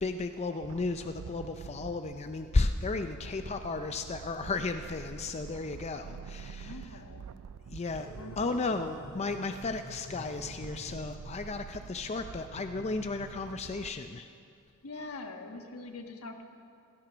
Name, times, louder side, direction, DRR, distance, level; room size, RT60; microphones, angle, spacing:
voice 1, 0.0-7.0 7.7-8.1 8.4-14.3, left 3 dB, 30° left, 7 dB, 0.4 m, -34 dB
sound 1, 0.6-13.9, right 6 dB, 85° right, 0.4 m, -47 dB
voice 2, 6.5-7.3 8.2-8.6 14.8-16.4, left 2 dB, 70° left, 4 dB, 1.4 m, -44 dB
sound 2, 7.9-11.4, equal, 45° left, 3.2 m, -48 dB
17.0 x 13.5 x 6.1 m, 2.5 s
head